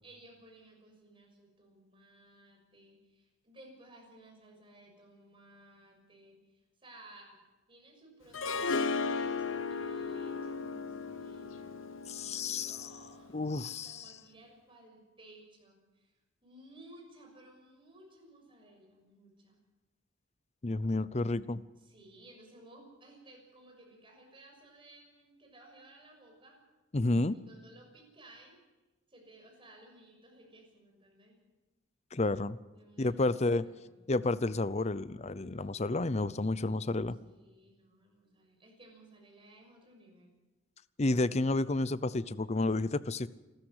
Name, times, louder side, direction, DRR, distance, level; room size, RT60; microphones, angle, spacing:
voice 1, 0.0-7.4 7.7-11.8 12.2-13.3 13.6-16.1 16.4-19.6 21.8-26.6 27.3-28.6 29.1-31.4 32.7-34.2 37.2-40.3, right 1 dB, 25° right, 1 dB, 6.3 m, -57 dB
Harp, 8.3-13.4, left 4 dB, 85° left, 1.0 m, -36 dB
voice 2, 12.1-12.9 13.3-14.0 20.6-21.6 26.9-27.4 32.1-32.6 33.0-33.7 34.1-37.2 41.0-43.3, left 2 dB, 35° left, 17 dB, 0.6 m, -30 dB
27.5 x 13.5 x 8.0 m, 1.1 s
head